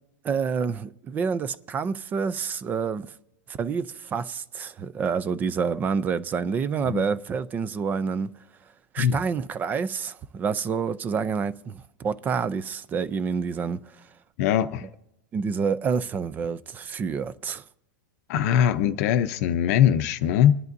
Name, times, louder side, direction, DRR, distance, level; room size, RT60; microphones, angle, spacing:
voice 1, 0.2-3.1 3.5-8.3 8.9-13.8 15.3-17.6, right 6 dB, 15° right, 0.4 m, -28 dB
voice 2, 14.4-14.9 18.3-20.6, left 9 dB, 50° left, 0.6 m, -21 dB
28.0 x 11.0 x 2.6 m
supercardioid pair, 155°, 11 cm